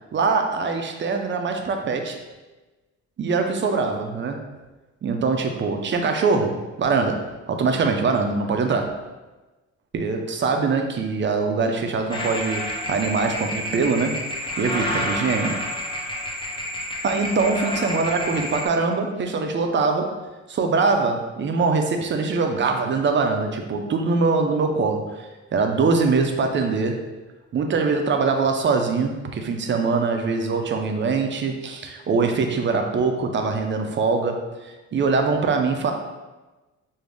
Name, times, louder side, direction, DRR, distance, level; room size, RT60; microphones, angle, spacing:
voice 1, 0.1-2.2 3.2-4.5 5.0-7.2 7.5-8.9 9.9-14.2 14.6-15.6 17.0-20.2 20.5-27.0 27.5-35.9, right 4 dB, 40° right, 4 dB, 0.5 m, -23 dB
sound 1, 12.1-18.7, left 1 dB, 15° left, 0.5 m, -29 dB
3.8 x 2.0 x 3.4 m, 1.2 s
cardioid pair, 90°, 30 cm